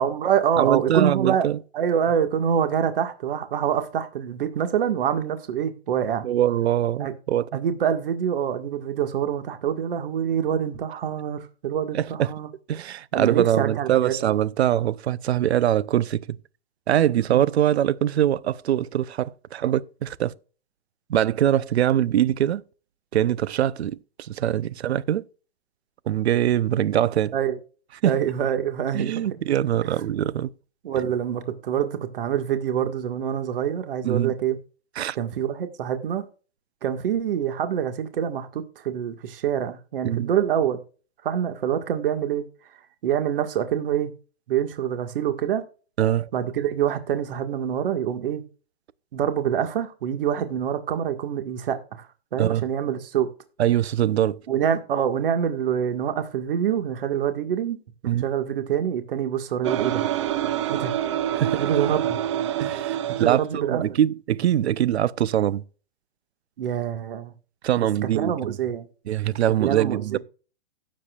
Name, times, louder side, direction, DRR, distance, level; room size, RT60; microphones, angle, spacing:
voice 1, 0.0-1.5 1.7-6.3 7.0-7.1 7.5-12.5 13.1-14.1 17.3-17.4 27.3-27.6 28.0-29.2 29.8-29.9 30.8-34.6 35.2-36.2 36.8-40.8 41.2-42.5 43.0-44.1 44.5-45.6 46.3-48.4 49.1-52.1 52.3-53.3 54.5-57.8 58.0-60.0 60.7-60.9 61.6-62.2 63.2-63.8 66.6-67.3 67.8-67.9 68.1-68.9 69.6-70.2, right 9 dB, 55° right, 1.8 m, -25 dB
voice 2, 0.6-1.6 6.2-7.5 11.9-12.3 12.7-16.4 16.9-20.3 21.1-22.6 23.1-25.2 26.1-27.3 28.0-28.2 28.9-30.5 34.0-34.3 35.0-35.2 40.0-40.3 46.0-46.3 52.4-52.6 53.6-54.4 58.0-58.2 61.4-61.6 62.6-65.6 67.6-68.5 69.1-70.2, right 11 dB, 80° right, 0.8 m, -23 dB
sound 1, 59.6-63.4, right 11 dB, 30° right, 0.6 m, -26 dB
16.5 x 7.7 x 2.4 m
hypercardioid pair, 165°, 32 cm